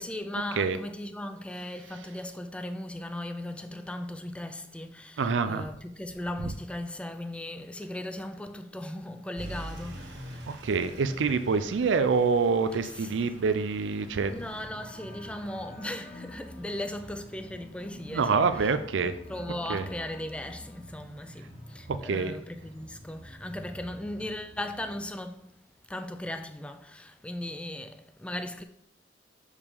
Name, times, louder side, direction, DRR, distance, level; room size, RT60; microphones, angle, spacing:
voice 1, 0.0-10.7 12.8-13.1 14.3-18.7 19.3-25.5 25.9-28.6, left 1 dB, 5° left, 0.4 m, -38 dB
voice 2, 5.2-5.7 10.5-14.4 18.1-19.1 19.7-19.9 21.9-22.3, right 5 dB, 90° right, 0.4 m, -26 dB
Truck / Idling, 9.4-14.7, right 1 dB, 75° right, 1.6 m, -45 dB
sound 1, 14.1-25.1, left 1 dB, 35° left, 1.1 m, -47 dB
6.7 x 4.9 x 3.6 m
head